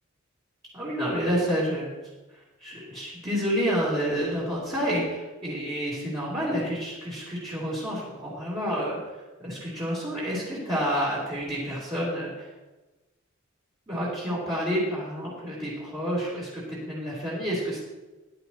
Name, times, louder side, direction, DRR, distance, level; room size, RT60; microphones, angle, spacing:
voice 1, 0.7-1.9 2.6-9.0 9.4-12.5 13.9-17.8, equal, 25° right, -9 dB, 3.9 m, -29 dB
16.0 x 11.0 x 3.1 m, 1.1 s
head